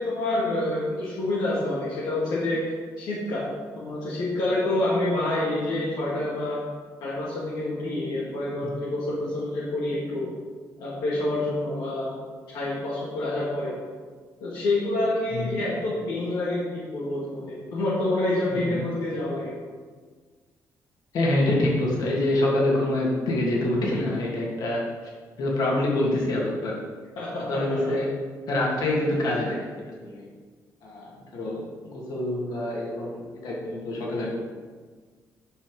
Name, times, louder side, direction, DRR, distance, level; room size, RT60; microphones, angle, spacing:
voice 1, 0.0-2.6 3.0-3.4 3.8-6.6 7.0-10.2 10.8-12.1 12.5-13.7 14.4-19.5 27.2-27.9, left 2 dB, 90° left, -7 dB, 2.2 m, -27 dB
voice 2, 15.3-15.6 18.5-18.8 21.1-24.8 25.4-26.8 27.5-28.1 28.5-30.2 30.8-34.4, left 1 dB, 70° left, -3 dB, 2.8 m, -26 dB
9.9 x 6.0 x 5.3 m, 1.5 s
cardioid pair, 95°, 7 cm